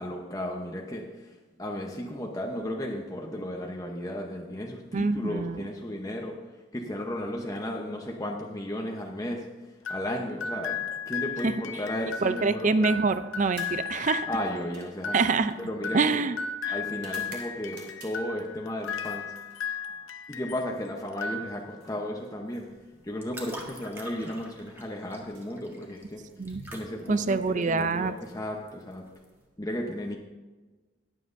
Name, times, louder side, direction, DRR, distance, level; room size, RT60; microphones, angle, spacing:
voice 1, 0.0-6.3 6.7-9.5 9.9-13.0 14.3-15.2 15.7-16.2 16.7-19.3 20.3-22.7 23.0-26.2 26.7-29.0 29.6-30.2, left 1 dB, 15° left, 0 dB, 0.8 m, -34 dB
voice 2, 4.9-5.7 11.4-11.5 12.2-14.3 15.1-15.5 15.9-16.4 16.6-16.7 26.4-26.6 27.1-28.1, right 4 dB, 40° right, 12 dB, 0.4 m, -25 dB
sound 1, 9.8-20.7 21.1-21.9, left 5 dB, 75° left, 0.7 m, -36 dB
sound 2, 13.4-18.4 18.8-20.0 21.2-23.0 24.1-24.4 25.2-26.3, right 4 dB, 55° right, 2.7 m, -52 dB
sound 3, 22.7-29.4, right 1 dB, 10° right, 1.5 m, -47 dB
20.5 x 7.6 x 2.6 m, 1.3 s
head